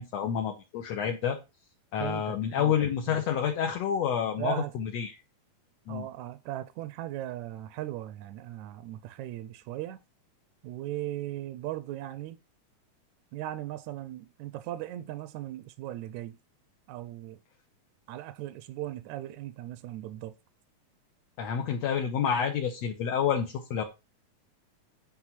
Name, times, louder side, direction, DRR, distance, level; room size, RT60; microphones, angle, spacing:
voice 1, 0.0-1.4 1.9-5.2 5.9-6.1 21.4-23.8, left 8 dB, 65° left, 2.0 m, -29 dB
voice 2, 2.0-2.7 3.1-3.2 4.4-4.7 5.9-10.0 10.6-12.4 13.3-16.4 16.9-17.4 18.1-20.3, right 14 dB, 80° right, 1.8 m, -38 dB
9.6 x 4.2 x 5.8 m
omnidirectional pair, 3.7 m